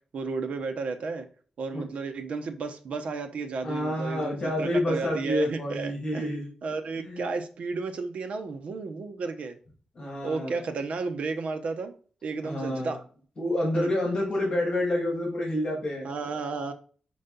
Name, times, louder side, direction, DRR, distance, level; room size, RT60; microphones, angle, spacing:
voice 1, 0.1-1.3 1.6-6.3 6.6-9.6 10.2-11.9 12.2-13.1 13.7-13.9 16.0-16.7, right 4 dB, 65° right, 1.0 m, -33 dB
voice 2, 3.6-6.5 7.0-7.3 10.0-10.6 12.4-13.0 13.4-16.1, left 1 dB, 40° left, 2.3 m, -28 dB
5.6 x 5.3 x 3.9 m
wide cardioid pair, 155°, 2 cm